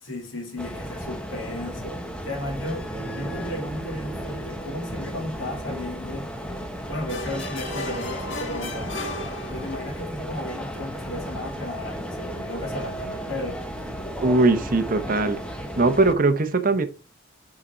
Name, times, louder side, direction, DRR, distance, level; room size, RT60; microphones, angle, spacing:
voice 1, 0.0-2.0 2.2-6.3 6.9-9.2 9.5-13.6, left 1 dB, 85° left, 2.5 m, -34 dB
sound 1, 0.6-16.1, equal, 5° left, 0.9 m, -34 dB
Bass guitar, 2.9-7.3, right 5 dB, 20° right, 2.6 m, -44 dB
sound 2, 7.1-10.0, left 2 dB, 65° left, 1.4 m, -35 dB
voice 2, 14.2-15.4 15.8-16.9, right 3 dB, 45° right, 0.8 m, -20 dB
6.4 x 5.0 x 4.3 m
head